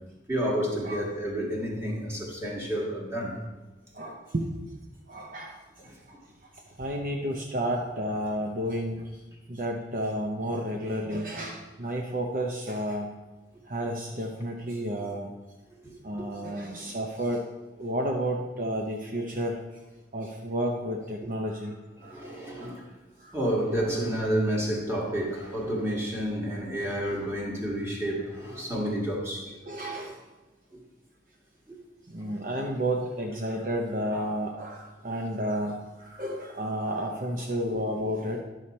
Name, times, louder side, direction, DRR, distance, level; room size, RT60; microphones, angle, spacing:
voice 1, 0.3-3.4 5.8-5.9 15.8-16.3 22.0-22.9 23.3-29.5 31.7-31.8 32.3-32.4 37.7-37.8, equal, 15° right, -2 dB, 1.7 m, -30 dB
voice 2, 3.9-4.5 5.1-5.6 6.1-6.2 6.8-9.1 9.5-13.1 13.7-15.3 16.0-17.5 17.8-19.6 20.1-21.7 22.0-22.3 22.6-22.7 23.2-23.4 29.6-30.2 32.1-38.4, right 1 dB, 50° right, 1 dB, 0.8 m, -31 dB
11.0 x 6.5 x 4.2 m, 1.2 s
head